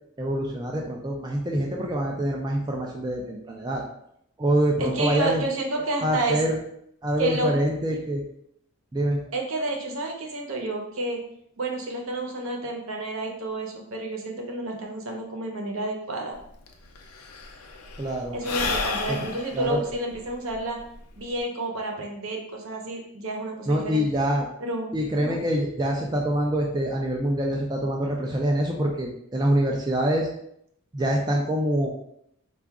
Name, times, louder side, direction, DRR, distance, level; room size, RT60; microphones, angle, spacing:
voice 1, 0.2-3.8 4.4-5.4 6.0-6.6 7.0-8.2 8.9-9.2 18.0-18.4 19.1-19.2 19.5-19.8 23.7-24.5 24.9-30.3 30.9-31.9, right 1 dB, 20° right, -1 dB, 0.4 m, -25 dB
voice 2, 4.8-6.4 7.2-7.5 9.3-11.2 11.6-16.4 18.3-20.8 21.2-24.1 24.6-25.4, right 2 dB, 65° right, 1 dB, 0.8 m, -30 dB
Sigh / Breathing, 16.4-16.5 16.7-21.4, left 4 dB, 85° left, 0.6 m, -32 dB
4.7 x 2.4 x 3.5 m, 0.72 s
head